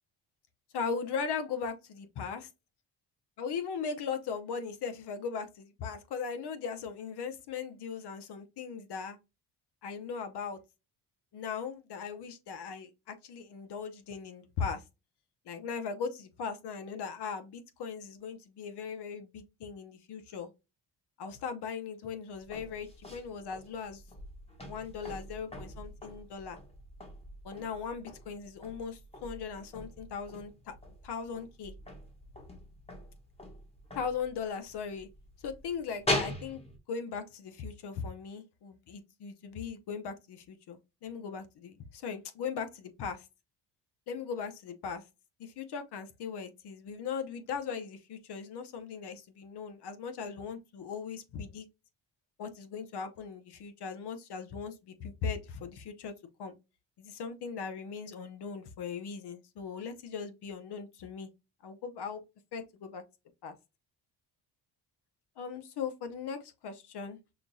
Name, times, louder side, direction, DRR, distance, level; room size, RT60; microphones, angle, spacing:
voice 1, 0.7-2.4 3.4-9.2 9.8-10.6 11.3-14.8 15.5-20.5 21.2-24.0 24.6-26.6 27.4-30.7 31.0-31.7 33.9-35.1 35.4-36.6 36.9-43.3 44.1-45.0 45.4-51.7 52.4-56.1 56.4-56.5 57.0-61.3 61.6-62.2 62.5-63.0 63.4-63.5 65.4-67.2, left 6 dB, 70° left, 0.9 m, -38 dB
sound 1, 22.4-36.8, left 1 dB, 15° left, 1.1 m, -41 dB
5.9 x 2.3 x 2.6 m
cardioid pair, 125°, 41 cm